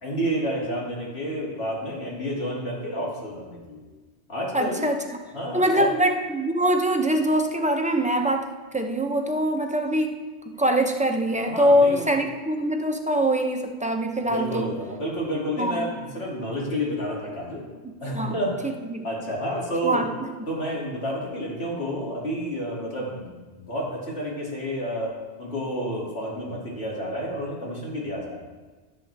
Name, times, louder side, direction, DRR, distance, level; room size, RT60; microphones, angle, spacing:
voice 1, 0.0-3.8 4.3-4.9 5.3-5.9 11.5-12.2 14.2-17.6 18.0-18.6 19.0-20.0 20.5-28.4, equal, 65° left, -4 dB, 2.7 m, -30 dB
voice 2, 4.5-5.2 5.5-10.2 10.5-14.7 15.6-15.9 18.1-18.4 18.9-19.1 19.8-20.3, right 1 dB, 10° right, 3 dB, 0.5 m, -23 dB
15.5 x 7.5 x 3.4 m, 1.3 s
omnidirectional pair, 1.1 m